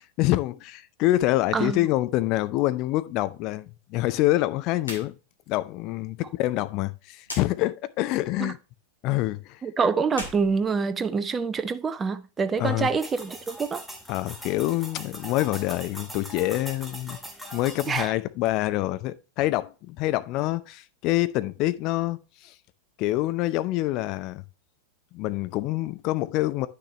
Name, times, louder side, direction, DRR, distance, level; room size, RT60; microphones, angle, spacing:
voice 1, 0.0-5.2 5.5-8.6 9.0-9.6 12.6-12.9 14.1-17.2 17.5-22.5 23.0-24.4 25.1-26.7, left 16 dB, 40° left, 0.6 m, -26 dB
voice 2, 1.5-1.9 8.4-8.5 9.6-13.9 17.9-18.1, right 5 dB, 20° right, 0.6 m, -26 dB
sound 1, 4.8-5.1 5.4-5.5 7.2-7.5 10.0-11.4, left 2 dB, 75° left, 2.4 m, -38 dB
sound 2, 13.0-18.1, right 1 dB, ahead, 1.5 m, -41 dB
9.7 x 6.3 x 3.1 m
figure-of-eight pair, 90°, 0 cm